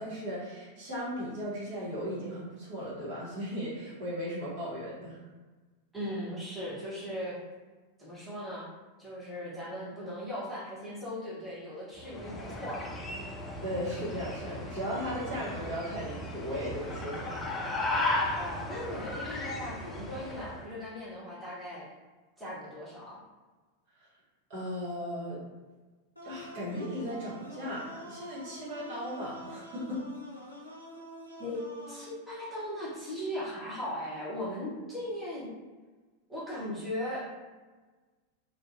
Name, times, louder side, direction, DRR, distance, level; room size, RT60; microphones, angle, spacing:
voice 1, 0.0-5.2 13.6-17.6 24.5-25.4 26.2-30.0, equal, 50° right, -8 dB, 1.1 m, -36 dB
voice 2, 5.9-7.4 8.0-8.7 9.0-13.0 18.3-21.9 22.4-23.2 31.4-31.6 31.9-35.5 36.3-37.3, equal, 10° right, -9 dB, 0.9 m, -38 dB
sound 1, 12.0-20.6, left 2 dB, 15° left, 0.4 m, -35 dB
sound 2, 26.2-32.2, equal, 85° left, 0.5 m, -47 dB
2.5 x 2.1 x 2.5 m, 1.3 s
figure-of-eight pair, 90°, 0 cm